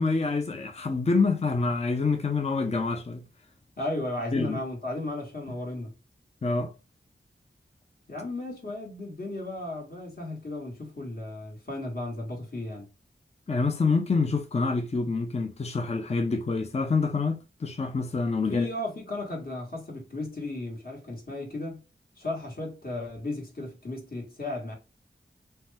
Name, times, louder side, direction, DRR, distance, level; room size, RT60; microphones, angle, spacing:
voice 1, 0.0-3.2 4.3-4.6 6.4-6.7 13.5-18.7, left 4 dB, 30° left, 0.5 m, -26 dB
voice 2, 3.8-5.9 8.1-12.9 18.5-21.8 22.2-24.7, left 2 dB, 50° left, 1.5 m, -35 dB
2.8 x 2.2 x 3.3 m
cardioid pair, 40°, 20 cm